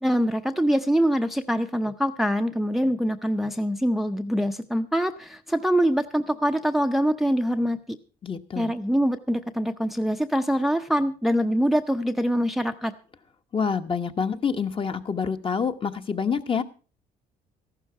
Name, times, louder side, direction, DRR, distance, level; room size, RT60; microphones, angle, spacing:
voice 1, 0.0-8.0 8.6-12.9, equal, ahead, 8 dB, 0.6 m, -24 dB
voice 2, 8.2-8.7 13.5-16.6, left 6 dB, 30° left, 8 dB, 1.1 m, -27 dB
14.0 x 12.0 x 4.6 m, 0.35 s
cardioid pair, 110°, 17 cm